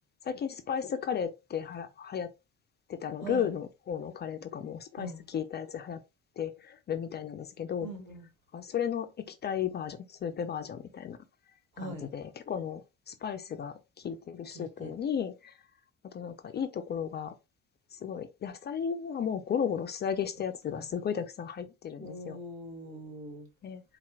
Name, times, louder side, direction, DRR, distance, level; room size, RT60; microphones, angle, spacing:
voice 1, 0.2-2.3 2.9-6.0 6.4-7.9 8.5-11.2 11.8-12.8 13.1-15.5 16.0-17.3 17.9-22.4 23.6-23.8, left 8 dB, 25° left, 0.4 m, -34 dB
voice 2, 3.2-3.5 5.0-5.2 7.8-8.3 11.8-12.1 14.5-15.0 20.8-20.9 22.0-23.5, right 2 dB, 80° right, 1.0 m, -42 dB
4.2 x 2.0 x 3.4 m
figure-of-eight pair, 45°, 41 cm